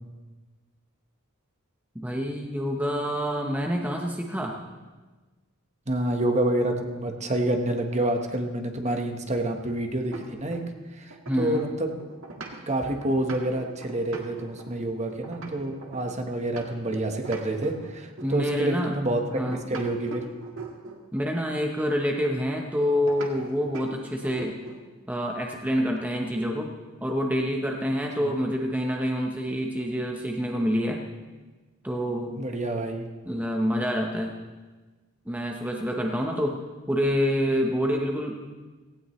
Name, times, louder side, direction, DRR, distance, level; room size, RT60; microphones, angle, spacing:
voice 1, 1.9-4.5 11.3-11.6 18.2-18.9 19.3-19.8 21.1-24.6 25.1-26.7 27.0-31.0 31.8-32.4 33.2-34.3 35.3-36.5 36.9-38.4, equal, 10° right, 1 dB, 0.9 m, -27 dB
voice 2, 5.9-10.6 11.0-12.0 12.7-19.4 19.7-20.3 28.2-28.3 32.4-33.1, right 1 dB, 35° right, 4 dB, 1.3 m, -28 dB
sound 1, 8.8-10.8 11.1-16.9 17.2-18.4 19.3-21.1 23.1-23.3 23.7-23.9 24.2-24.9, right 3 dB, 65° right, 1.8 m, -41 dB
17.5 x 16.0 x 3.2 m, 1.3 s
head